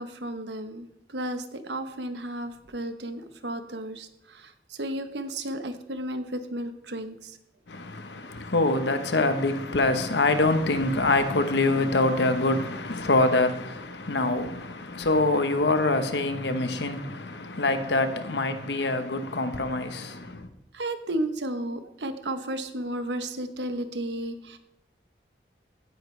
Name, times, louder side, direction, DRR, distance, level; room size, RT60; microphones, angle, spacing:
voice 1, 0.0-7.4 20.7-24.6, right 1 dB, 80° right, 1.1 m, -33 dB
voice 2, 7.7-20.5, left 2 dB, 80° left, 1.1 m, -25 dB
16.0 x 9.7 x 3.3 m
head